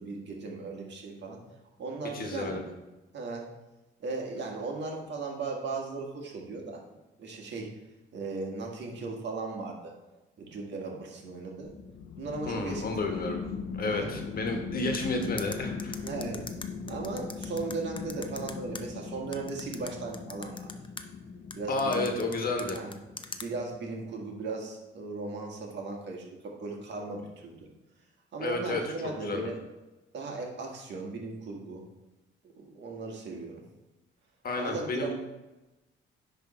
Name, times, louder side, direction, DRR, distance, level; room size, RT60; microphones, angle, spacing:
voice 1, 0.0-1.4 1.8-2.6 3.1-3.5 4.0-6.8 7.2-7.7 8.1-9.9 10.4-11.7 12.2-13.2 13.9-14.1 16.0-16.4 16.9-20.7 21.6-22.1 22.7-23.0 23.4-27.7 28.3-29.6 30.1-31.8 32.6-33.6 34.6-35.1, right 3 dB, 65° right, 0 dB, 1.7 m, -37 dB
voice 2, 2.1-2.6 12.4-13.4 13.7-16.0 21.7-22.8 28.4-28.9 29.2-29.5 34.4-35.1, left 2 dB, 50° left, 3 dB, 1.3 m, -31 dB
sound 1, 11.6-23.7, left 5 dB, 75° left, 0.8 m, -40 dB
sound 2, 14.9-18.8 19.3-21.0 21.5-23.5, left 4 dB, 25° left, 0.6 m, -41 dB
10.0 x 3.4 x 4.3 m, 1.1 s
cardioid pair, 90°, 20 cm